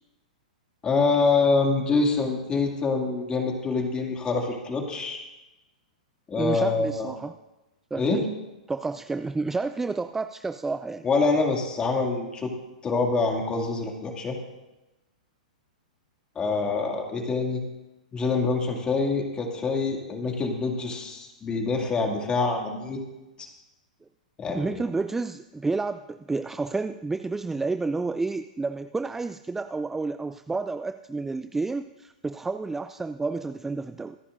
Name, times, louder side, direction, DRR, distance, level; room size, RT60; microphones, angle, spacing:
voice 1, 0.8-5.2 6.3-7.1 8.0-8.2 11.0-12.5 12.8-14.4 16.4-17.6 18.1-23.0 24.4-24.8, left 4 dB, 20° left, 2 dB, 2.4 m, -25 dB
voice 2, 6.4-7.3 7.9-8.3 8.7-11.1 24.5-34.2, right 3 dB, 10° right, 11 dB, 0.3 m, -30 dB
24.5 x 10.0 x 2.6 m, 1.0 s
hypercardioid pair, 115°, 4 cm